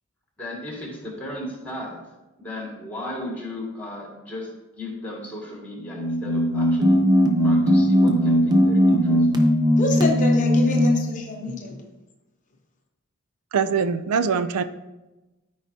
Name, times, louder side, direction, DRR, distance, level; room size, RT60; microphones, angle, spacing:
voice 1, 0.4-1.9 2.4-4.5 4.8-7.0 7.4-9.2, left 1 dB, 5° left, -2 dB, 2.0 m, -35 dB
sound 1, 5.8-11.1, equal, 20° right, 0.7 m, -19 dB
voice 2, 9.8-11.9, left 1 dB, 35° left, 2 dB, 0.7 m, -27 dB
voice 3, 13.5-14.6, right 6 dB, 90° right, 12 dB, 0.4 m, -23 dB
13.0 x 4.8 x 2.8 m, 1.1 s
head